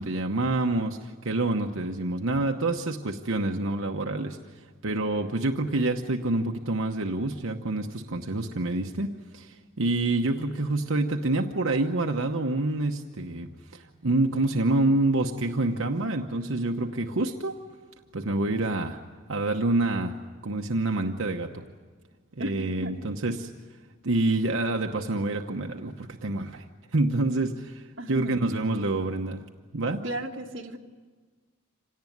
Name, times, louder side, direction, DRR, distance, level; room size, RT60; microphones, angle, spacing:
voice 1, 0.0-17.6 18.1-19.0 19.3-20.1 20.4-21.7 22.4-23.5 24.0-26.7 26.9-29.4 29.7-30.0, right 2 dB, 85° right, 3 dB, 1.0 m, -27 dB
voice 2, 28.0-28.3 30.0-30.8, right 1 dB, 65° right, 1 dB, 1.8 m, -34 dB
26.5 x 18.0 x 9.4 m, 1.5 s
head